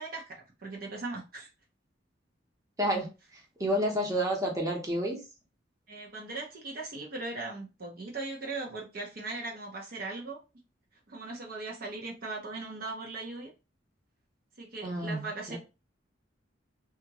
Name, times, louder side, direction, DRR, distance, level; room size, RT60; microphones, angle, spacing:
voice 1, 0.0-1.5 5.9-10.4 11.1-13.5 14.6-15.6, right 3 dB, 55° right, 0.8 m, -39 dB
voice 2, 3.6-5.2 14.8-15.6, equal, 20° right, 0.8 m, -29 dB
2.8 x 2.4 x 2.9 m
head